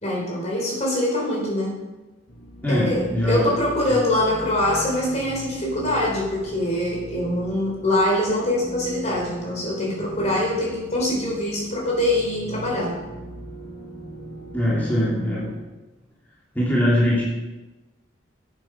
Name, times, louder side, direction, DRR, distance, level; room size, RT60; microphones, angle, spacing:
voice 1, 0.0-1.8 2.7-12.9, left 1 dB, 35° left, -2 dB, 3.7 m, -24 dB
sound 1, 2.3-15.6, right 1 dB, 80° left, 1.7 m, -39 dB
voice 2, 2.6-3.5 3.9-4.0 14.5-15.5 16.5-17.2, equal, 10° left, -8 dB, 3.0 m, -22 dB
10.0 x 9.1 x 6.2 m, 1.1 s
head